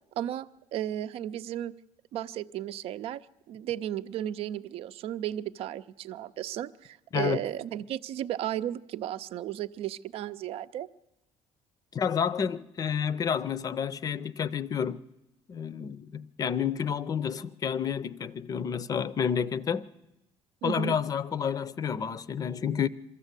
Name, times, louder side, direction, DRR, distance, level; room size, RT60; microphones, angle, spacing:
voice 1, 0.2-1.7 2.1-3.2 3.5-10.9 20.6-21.0, right 11 dB, 65° right, 0.6 m, -34 dB
voice 2, 11.9-15.0 15.5-19.8 20.6-22.9, left 7 dB, 35° left, 0.6 m, -30 dB
22.5 x 14.0 x 8.2 m
cardioid pair, 130°, 11 cm